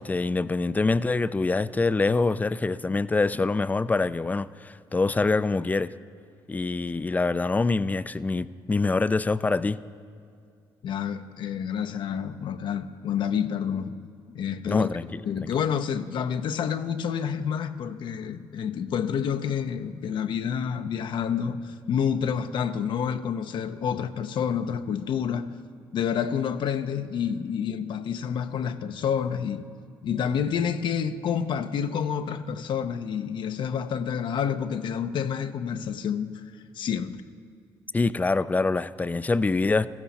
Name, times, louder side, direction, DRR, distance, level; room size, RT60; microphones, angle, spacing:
voice 1, 0.0-5.9 6.5-9.8 14.6-15.2 37.9-39.9, left 3 dB, 20° left, 0.4 m, -25 dB
voice 2, 10.8-14.0 14.3-14.9 15.3-25.5 25.9-29.7 30.0-36.4 36.7-37.2, left 7 dB, 60° left, 0.6 m, -28 dB
16.0 x 14.5 x 4.1 m
supercardioid pair, 75°, 9 cm